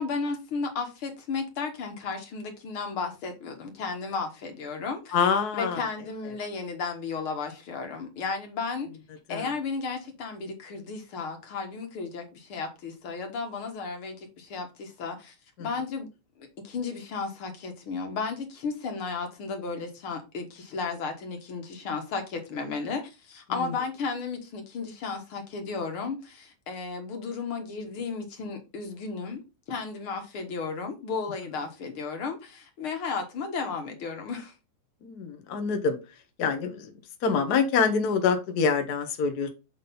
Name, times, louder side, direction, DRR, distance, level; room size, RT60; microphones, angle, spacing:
voice 1, 0.0-5.2 5.5-8.9 9.3-16.1 16.4-29.4 29.7-34.5, left 4 dB, 50° left, 2.1 m, -34 dB
voice 2, 5.1-5.8 9.3-9.5 35.0-36.0 36.4-36.8 37.2-39.5, left 5 dB, 80° left, 0.8 m, -25 dB
7.2 x 4.0 x 5.3 m
omnidirectional pair, 3.5 m